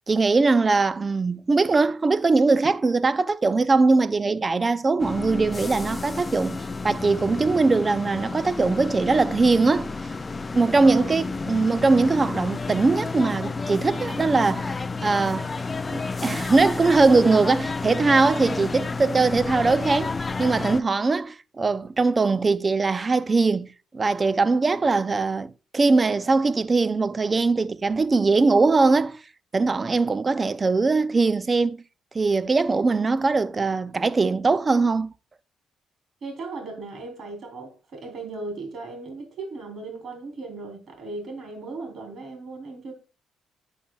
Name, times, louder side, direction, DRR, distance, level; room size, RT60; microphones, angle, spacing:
voice 1, 0.1-6.6 6.8-9.9 10.5-14.8 15.0-15.5 15.9-23.7 23.9-29.2 29.5-31.8 32.1-35.1, right 3 dB, 30° right, 0.5 m, -21 dB
sound 1, 5.0-20.8, left 4 dB, 25° left, 0.4 m, -31 dB
voice 2, 10.8-11.2 36.2-42.9, right 3 dB, 55° right, 3.5 m, -37 dB
11.0 x 5.8 x 2.3 m
cardioid pair, 90°, 0 cm